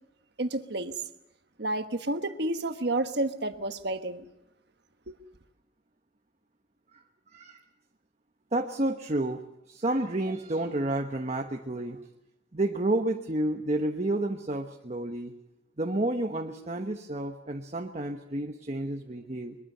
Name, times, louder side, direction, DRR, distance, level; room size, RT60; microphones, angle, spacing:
voice 1, 0.4-1.0 1.6-4.2 5.1-5.2, right 2 dB, 60° right, 1.4 m, -30 dB
voice 2, 8.5-12.0 12.5-15.4 15.8-19.6, right 1 dB, 35° right, 1.1 m, -30 dB
22.5 x 22.0 x 6.8 m
head